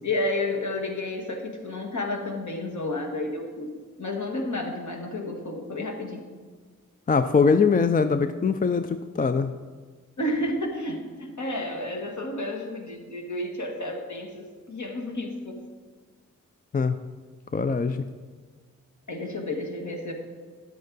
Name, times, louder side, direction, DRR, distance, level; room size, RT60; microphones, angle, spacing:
voice 1, 0.0-6.2 10.2-15.6 19.1-20.1, left 1 dB, 60° left, 2 dB, 1.7 m, -31 dB
voice 2, 7.1-9.5 16.7-17.0 17.5-18.0, left 5 dB, 25° left, 10 dB, 0.4 m, -22 dB
10.5 x 7.6 x 4.0 m, 1.5 s
cardioid pair, 50°, 33 cm